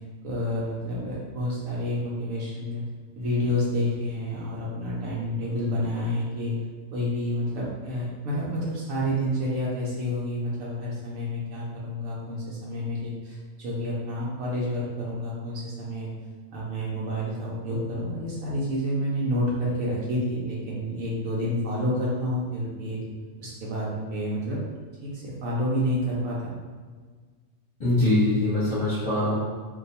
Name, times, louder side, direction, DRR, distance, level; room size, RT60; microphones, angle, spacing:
voice 1, 0.2-2.8 3.1-6.5 6.9-16.1 16.5-23.0 23.4-24.6 25.0-26.5, equal, 85° right, -5 dB, 1.0 m, -29 dB
voice 2, 27.8-29.3, left 1 dB, 30° left, -12 dB, 0.9 m, -23 dB
2.5 x 2.3 x 4.0 m, 1.5 s
omnidirectional pair, 1.3 m